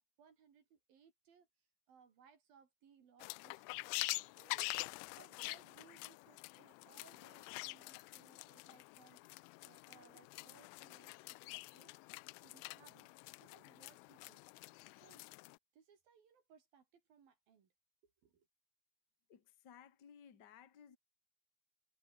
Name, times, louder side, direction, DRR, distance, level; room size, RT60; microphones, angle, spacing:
voice 1, 0.2-1.5 1.9-3.9 4.3-4.8 5.2-12.0 12.4-13.1 13.4-14.4 15.0-15.3 15.7-17.7 18.0-18.5, right 7 dB, 50° right, 4.0 m, -66 dB
sound 1, 3.2-15.6, left 25 dB, 85° left, 2.7 m, -46 dB
voice 2, 19.3-21.0, left 8 dB, 45° left, 1.3 m, -59 dB
omnidirectional pair, 5.8 m